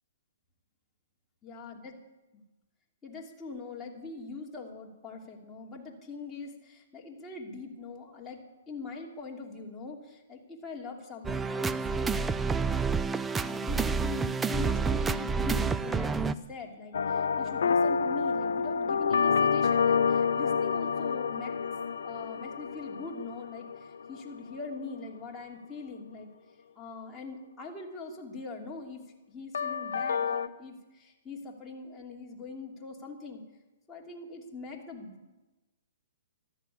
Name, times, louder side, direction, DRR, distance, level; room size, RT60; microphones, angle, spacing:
voice 1, 1.4-1.9 2.3-2.4 3.0-21.5 22.0-26.3 26.7-33.4 33.9-35.3, left 4 dB, 15° left, -2 dB, 2.9 m, -42 dB
sound 1, 11.2-16.3, right 5 dB, 10° right, 0.5 m, -29 dB
sound 2, 16.9-24.2 29.5-30.5, left 6 dB, 75° left, 0.7 m, -28 dB
14.0 x 12.0 x 8.4 m, 1.1 s
hypercardioid pair, 135°, 0 cm